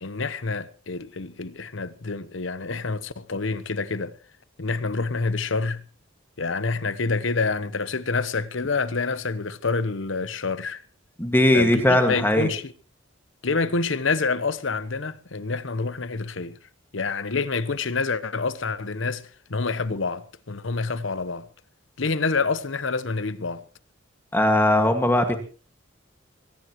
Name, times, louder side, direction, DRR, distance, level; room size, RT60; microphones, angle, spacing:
voice 1, 0.0-4.2 4.6-5.8 6.4-10.8 11.5-12.7 13.4-16.6 16.9-19.2 19.5-21.5 22.0-23.6, left 4 dB, 70° left, 1.0 m, -27 dB
voice 2, 11.2-12.5 24.3-25.4, left 1 dB, 10° left, 1.9 m, -19 dB
22.5 x 18.0 x 3.1 m
head